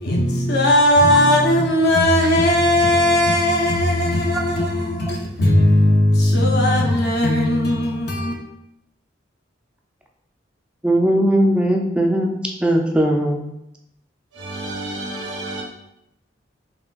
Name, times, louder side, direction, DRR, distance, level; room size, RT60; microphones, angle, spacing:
voice 1, 0.0-8.3, left 1 dB, 60° left, 0.7 m, -17 dB
voice 2, 10.8-12.3 12.6-13.5, right 1 dB, 5° right, 0.4 m, -18 dB
voice 3, 14.3-15.6, right 2 dB, 75° right, 0.6 m, -30 dB
5.6 x 2.3 x 2.4 m
head